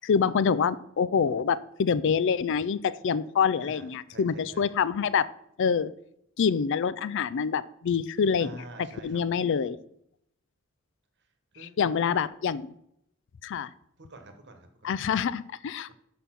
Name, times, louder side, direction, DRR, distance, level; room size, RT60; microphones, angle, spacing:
voice 1, 0.0-5.3 5.6-5.9 6.4-8.6 9.0-9.8 11.6-12.7 13.4-13.7 14.8-15.9, left 6 dB, 55° left, 17 dB, 0.4 m, -26 dB
voice 2, 3.6-4.7 8.4-9.4 11.5-12.1 14.0-15.0, right 2 dB, 50° right, 6 dB, 1.2 m, -48 dB
6.6 x 5.3 x 5.8 m, 0.75 s
head